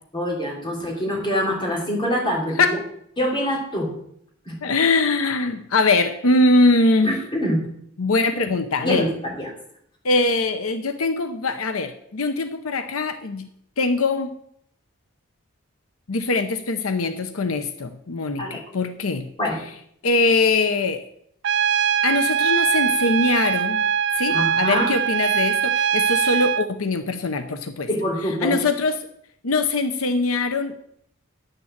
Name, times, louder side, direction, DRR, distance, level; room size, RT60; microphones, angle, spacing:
voice 1, 0.1-2.8 3.2-3.9 4.4-4.6 7.0-7.6 8.8-9.5 18.4-18.6 19.4-19.6 24.3-24.9 27.9-28.6, equal, 25° left, -2 dB, 3.3 m, -25 dB
voice 2, 4.6-7.2 8.0-9.0 10.0-13.5 13.8-14.3 16.1-19.3 20.0-21.0 22.0-23.9 24.1-27.9 28.4-29.0 29.4-30.9, left 3 dB, 90° left, 9 dB, 0.8 m, -22 dB
Trumpet, 21.4-26.7, right 8 dB, 55° right, 0.5 m, -22 dB
9.7 x 6.8 x 7.4 m, 0.70 s
head